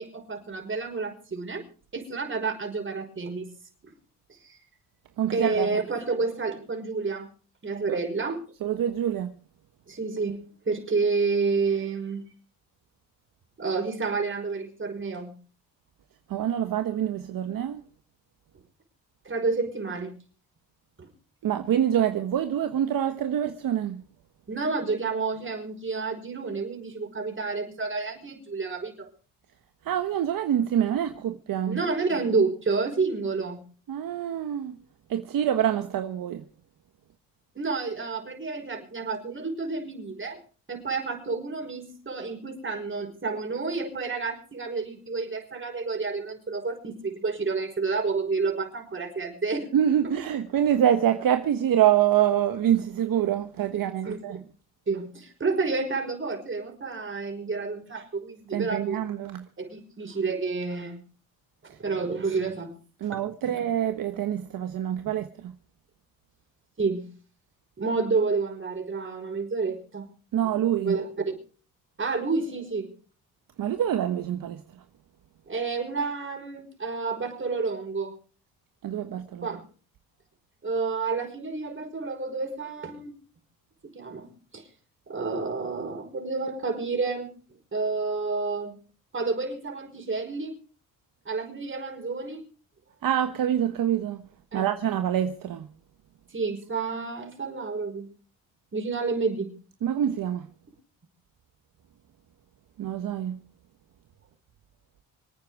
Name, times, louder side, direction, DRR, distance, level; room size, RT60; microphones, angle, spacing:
voice 1, 0.0-1.6 1.9-3.5 4.4-4.6 5.3-7.3 7.6-8.4 9.9-10.4 10.7-12.2 13.6-15.3 19.2-20.1 21.0-21.1 24.5-29.1 31.7-33.6 37.6-40.4 40.7-49.7 54.0-54.4 54.9-59.0 59.6-61.0 61.8-62.7 63.1-63.2 63.4-63.5 66.8-67.1 67.8-70.0 70.8-71.1 72.0-72.9 75.5-78.1 79.4-79.6 80.6-83.1 83.9-84.6 85.1-87.3 87.7-88.7 89.1-90.5 91.3-92.4 94.5-94.7 96.3-98.1 98.7-99.5, right 4 dB, 35° right, 5.5 m, -29 dB
voice 2, 5.2-5.8 7.9-8.0 8.6-9.3 16.3-17.8 21.4-24.0 29.8-31.8 33.9-34.8 35.1-36.4 49.7-54.4 58.5-59.5 61.7-61.8 63.0-65.5 70.3-71.0 73.6-74.8 78.8-79.6 93.0-94.2 94.5-95.7 99.8-100.5 102.8-103.4, right 10 dB, 65° right, 1.3 m, -26 dB
26.0 x 9.3 x 4.9 m
supercardioid pair, 70°, 36 cm